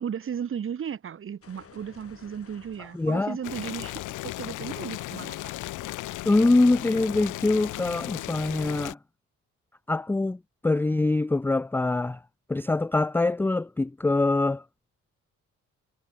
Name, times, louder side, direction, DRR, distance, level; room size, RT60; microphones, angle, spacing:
voice 1, 0.0-5.5, right 8 dB, 45° right, 1.4 m, -35 dB
sound 1, 1.4-6.2, left 7 dB, 50° left, 5.5 m, -56 dB
voice 2, 2.9-3.4 6.3-9.0 9.9-12.2 12.5-14.6, left 2 dB, 5° left, 0.4 m, -24 dB
Boiling, 3.4-8.9, left 17 dB, 85° left, 1.0 m, -36 dB
cardioid pair, 90°, 30 cm